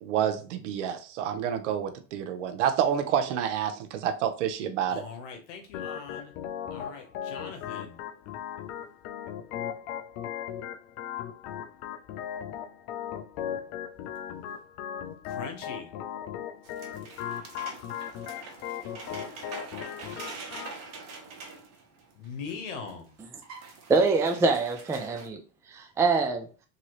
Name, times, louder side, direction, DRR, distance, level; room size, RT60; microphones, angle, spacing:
voice 1, 0.0-5.0, right 9 dB, 90° right, 0.6 m, -28 dB
voice 2, 4.9-6.3 6.7-8.0 15.2-15.9 22.1-23.1, left 5 dB, 90° left, 1.0 m, -41 dB
Organ, 5.7-20.7, left 9 dB, 60° left, 0.5 m, -37 dB
sound 1, 16.6-22.5 22.9-23.0 23.2-25.3, right 4 dB, 45° right, 1.0 m, -44 dB
voice 3, 23.9-25.4 25.7-26.5, right 4 dB, 10° right, 0.3 m, -24 dB
2.8 x 2.7 x 3.0 m
supercardioid pair, 110°, 35 cm